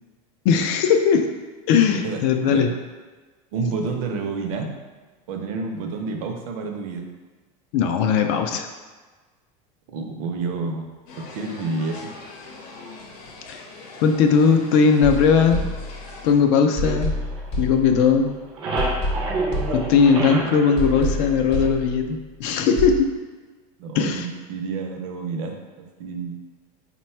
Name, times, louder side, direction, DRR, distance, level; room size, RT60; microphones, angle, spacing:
voice 1, 0.4-1.3 1.7-2.7 7.7-8.7 13.5-13.6 14.0-15.6 16.2-17.2 17.6-18.3 19.7-23.1 23.9-24.3, left 6 dB, 50° left, 5 dB, 0.4 m, -18 dB
voice 2, 2.0-2.6 3.5-4.7 5.3-7.0 9.9-10.9 11.3-12.0 23.8-25.6 26.0-26.4, right 4 dB, 65° right, 3 dB, 0.6 m, -29 dB
sound 1, 11.1-16.3, left 3 dB, 85° left, 0.8 m, -42 dB
sound 2, 15.0-16.3 16.8-18.3 18.8-20.3 20.8-22.3 22.8-23.0, left 1 dB, 35° left, 0.9 m, -29 dB
sound 3, 16.8-18.0 18.3-22.0, right 3 dB, 25° right, 0.4 m, -29 dB
4.0 x 2.2 x 4.3 m, 1.3 s
cardioid pair, 175°, 19 cm